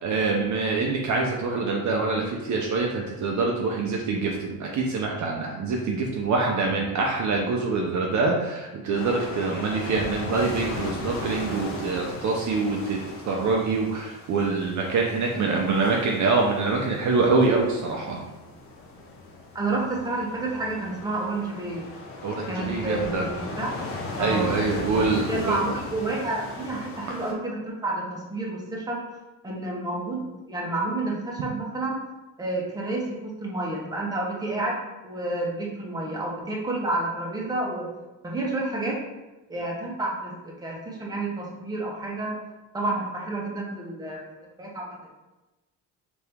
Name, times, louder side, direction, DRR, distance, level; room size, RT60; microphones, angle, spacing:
voice 1, 0.0-13.0 13.3-18.2 22.2-23.3 24.2-25.6, right 3 dB, 50° right, 0 dB, 0.6 m, -25 dB
sound 1, 8.9-27.3, left 2 dB, 35° left, 0.6 m, -37 dB
voice 2, 19.5-21.9 22.5-23.8 24.2-24.5 24.9-25.0 25.3-29.0 29.4-32.0 32.4-37.9 38.2-39.0 39.5-42.4 42.7-44.2 44.6-45.1, right 2 dB, 10° right, -3 dB, 0.8 m, -30 dB
2.8 x 2.6 x 3.4 m, 1.1 s
cardioid pair, 95°, 39 cm